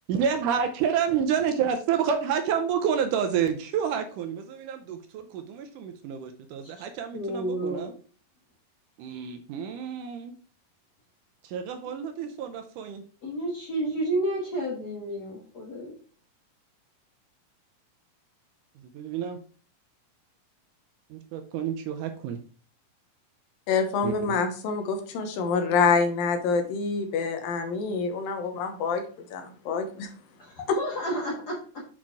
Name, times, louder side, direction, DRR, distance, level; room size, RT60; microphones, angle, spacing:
voice 1, 0.1-7.9 9.0-10.4 11.4-13.0 18.9-19.4 21.1-22.4 24.0-24.4, right 7 dB, 80° right, 6 dB, 2.0 m, -29 dB
voice 2, 7.1-7.9 13.2-16.0 30.4-31.9, right 1 dB, 65° left, -4 dB, 0.9 m, -31 dB
voice 3, 23.7-29.0 29.3-30.1 30.7-30.8, left 5 dB, 85° left, 6 dB, 2.8 m, -26 dB
7.3 x 4.2 x 4.5 m, 0.41 s
omnidirectional pair, 4.0 m